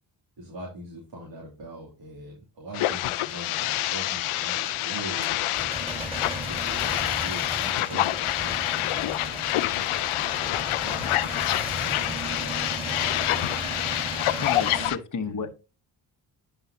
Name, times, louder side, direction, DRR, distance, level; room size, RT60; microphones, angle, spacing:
voice 1, 0.4-5.7 6.4-11.1 11.8-13.0 14.7-14.9 15.2-15.5, right 1 dB, 60° right, -3 dB, 2.8 m, -42 dB
sound 1, 2.7-15.0, left 15 dB, 75° left, 0.6 m, -27 dB
Male speech man speaking / Vehicle / Engine starting, 3.3-14.9, right 1 dB, 10° right, 3.8 m, -36 dB
voice 2, 14.4-15.5, left 5 dB, 35° left, 6 dB, 1.1 m, -31 dB
11.0 x 4.7 x 2.8 m, 0.30 s
supercardioid pair, 55°, 50 cm